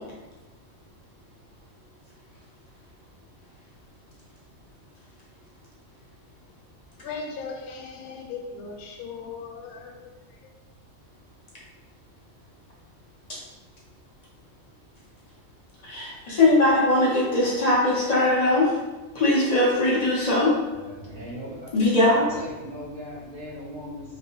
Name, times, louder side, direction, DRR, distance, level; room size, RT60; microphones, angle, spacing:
voice 1, 7.0-9.9, left 4 dB, 90° left, 1 dB, 1.1 m, -37 dB
voice 2, 15.8-18.8 19.1-20.6 21.7-22.3, left 2 dB, 40° left, -5 dB, 0.6 m, -20 dB
voice 3, 20.7-21.7 22.3-24.2, equal, 55° right, -5 dB, 0.7 m, -38 dB
3.2 x 2.6 x 2.8 m, 1.1 s
omnidirectional pair, 1.5 m